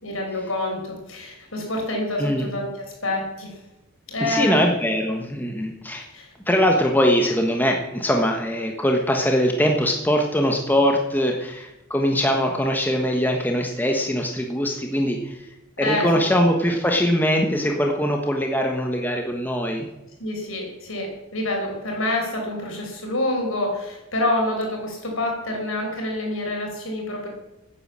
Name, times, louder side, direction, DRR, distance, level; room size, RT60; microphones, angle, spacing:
voice 1, 0.0-3.6 4.1-4.6 6.1-6.3 15.8-16.3 20.2-27.3, left 1 dB, 65° left, 1 dB, 5.9 m, -27 dB
voice 2, 4.2-6.0 6.5-15.4 15.8-19.9, equal, 10° left, 2 dB, 1.3 m, -22 dB
16.0 x 9.8 x 7.5 m, 0.98 s
head